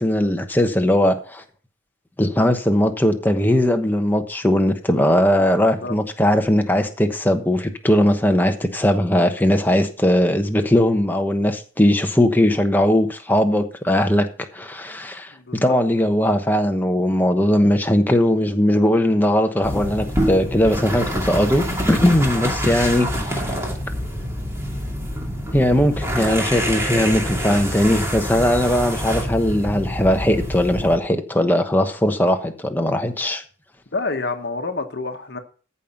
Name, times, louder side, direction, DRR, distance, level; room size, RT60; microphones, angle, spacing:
voice 1, 0.0-1.4 2.2-14.3 14.5-15.3 15.6-23.5 25.5-33.4, left 1 dB, 10° left, 1.1 m, -19 dB
voice 2, 5.6-6.0 15.5-15.8 33.9-35.4, left 3 dB, 55° left, 1.2 m, -28 dB
sound 1, 19.6-31.0, equal, 15° right, 2.5 m, -26 dB
14.0 x 5.6 x 5.8 m
head